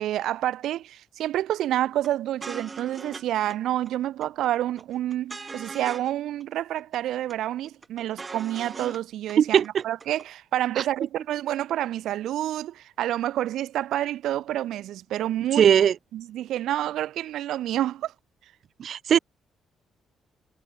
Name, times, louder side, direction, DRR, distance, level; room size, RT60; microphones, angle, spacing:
voice 1, 0.0-15.7 16.1-18.1, right 13 dB, 80° right, 3.8 m, -28 dB
sound 1, 2.0-2.1 2.4-3.2 3.5-3.6 3.9-4.5 4.8-6.1 6.4-6.5 6.8-7.3 7.6-9.0 9.3-9.4 9.6-10.2, right 4 dB, 30° right, 6.2 m, -40 dB
voice 2, 9.4-9.8 15.5-15.9 18.8-19.2, right 9 dB, 60° right, 0.4 m, -19 dB
cardioid pair, 90°, 0 cm